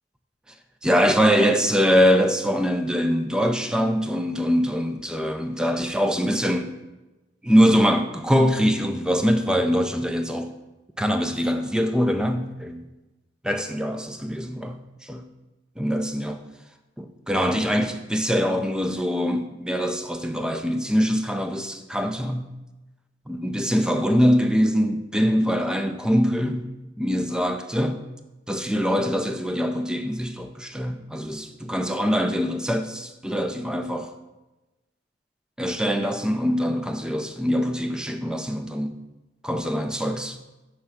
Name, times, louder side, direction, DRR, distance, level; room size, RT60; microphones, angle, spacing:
voice 1, 0.8-6.7 7.4-10.5 11.0-12.8 13.4-14.8 15.0-15.2 15.8-16.4 17.0-22.5 23.3-28.0 28.5-34.1 35.6-39.0 39.4-40.4, equal, 5° right, 0.3 m, -23 dB
5.8 x 3.2 x 5.6 m
head